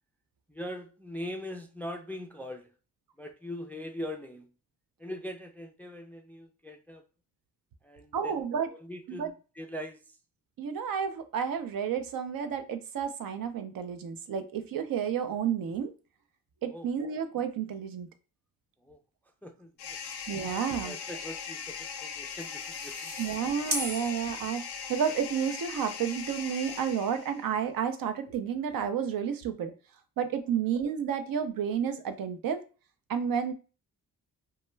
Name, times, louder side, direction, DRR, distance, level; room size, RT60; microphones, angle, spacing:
voice 1, 0.5-2.7 3.2-4.5 5.0-7.0 7.8-10.2 16.7-16.9 18.8-19.0 19.4-20.0 20.8-23.2, left 1 dB, 5° left, 0.3 m, -41 dB
voice 2, 8.1-8.7 9.1-9.3 10.6-15.9 16.6-18.1 20.3-20.9 23.2-24.6 24.9-29.7 30.2-32.6 33.1-33.5, right 7 dB, 60° right, 0.5 m, -31 dB
sound 1, 19.8-27.5, left 7 dB, 80° left, 0.5 m, -40 dB
sound 2, 22.1-25.1, equal, 25° right, 0.9 m, -38 dB
2.2 x 2.2 x 3.0 m
supercardioid pair, 55°, 38 cm